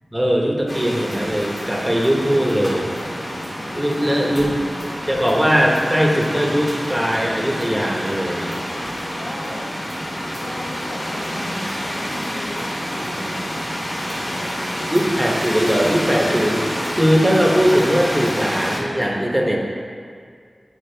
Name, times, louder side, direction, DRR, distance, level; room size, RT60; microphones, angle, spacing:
voice 1, 0.1-3.0 3.8-4.6 5.1-8.6 14.9-16.6 16.9-19.6, equal, 10° right, -2 dB, 1.0 m, -19 dB
sound 1, 0.7-18.8, equal, 45° left, 1.7 m, -28 dB
voice 2, 4.0-4.8 9.1-9.8 10.4-13.5 14.2-14.7 19.2-19.4, left 1 dB, 85° left, -4 dB, 1.1 m, -36 dB
8.5 x 4.7 x 3.3 m, 2.1 s
wide cardioid pair, 60°, 0 cm